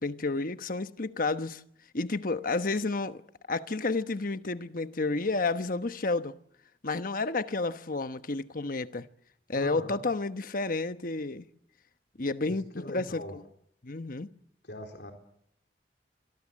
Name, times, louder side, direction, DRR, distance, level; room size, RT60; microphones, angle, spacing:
voice 1, 0.0-1.6 1.9-3.2 3.5-6.3 6.8-9.0 9.5-11.4 12.2-13.4 13.8-14.3, left 3 dB, 50° left, 1.1 m, -31 dB
voice 2, 9.5-10.0 12.5-13.4 14.6-15.1, left 1 dB, 70° left, 3.7 m, -41 dB
25.5 x 23.0 x 7.5 m
head